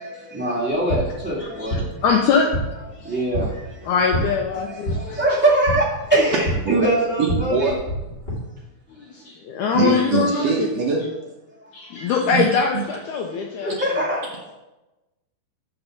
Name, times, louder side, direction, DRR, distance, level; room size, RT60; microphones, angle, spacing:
voice 1, 0.0-1.9 3.0-3.9 4.5-7.7 11.6-11.7 13.2-13.3 13.6-14.5, right 1 dB, 5° right, -6 dB, 0.8 m, -23 dB
sound 1, 0.6-8.3, right 1 dB, 20° left, 1.9 m, -29 dB
voice 2, 1.4-1.7 2.0-2.5 2.9-3.0 3.8-5.2 9.0-10.7 11.7-13.8, left 5 dB, 80° left, 2 dB, 1.8 m, -22 dB
voice 3, 7.2-7.8 9.7-11.1 12.1-12.4, right 5 dB, 75° right, -1 dB, 1.5 m, -22 dB
7.9 x 5.3 x 5.9 m, 1.0 s
omnidirectional pair, 4.2 m